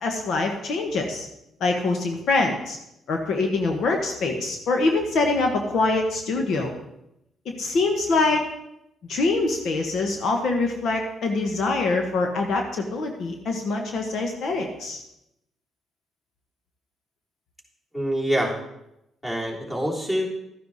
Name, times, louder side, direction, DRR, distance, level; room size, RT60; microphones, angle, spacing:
voice 1, 0.0-1.3 1.6-2.8 3.1-6.7 7.4-8.4 9.1-15.0, left 3 dB, 70° left, 3 dB, 1.4 m, -24 dB
voice 2, 17.9-18.5 19.2-20.2, equal, 15° left, -3 dB, 3.5 m, -25 dB
13.0 x 9.7 x 4.2 m, 0.84 s
cardioid pair, 90°, 0 cm